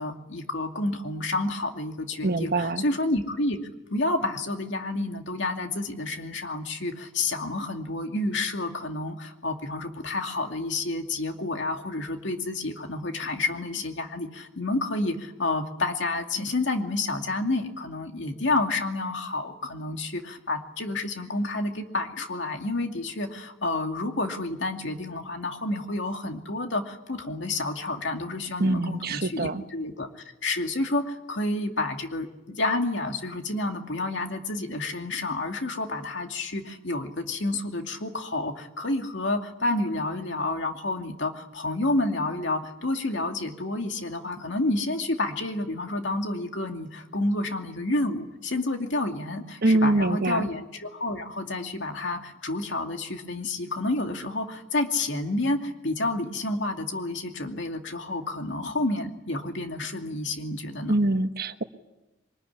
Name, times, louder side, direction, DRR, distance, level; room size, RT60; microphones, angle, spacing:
voice 1, 0.0-3.6 3.9-61.0, left 2 dB, 70° left, 4 dB, 2.5 m, -29 dB
voice 2, 2.2-2.8 28.6-29.6 49.6-50.4 60.9-61.6, right 2 dB, 55° right, 9 dB, 1.2 m, -24 dB
23.5 x 21.0 x 10.0 m, 0.99 s
head